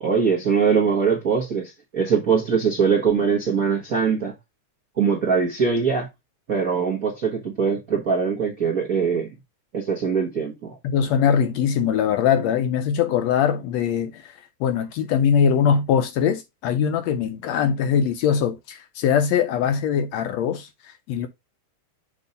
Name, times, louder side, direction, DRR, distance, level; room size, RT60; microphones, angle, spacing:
voice 1, 0.0-4.3 5.0-6.1 6.5-9.3 9.7-10.8, right 6 dB, 50° right, 1.0 m, -22 dB
voice 2, 10.8-21.3, left 7 dB, 75° left, 1.7 m, -22 dB
6.9 x 3.1 x 5.1 m
omnidirectional pair, 3.4 m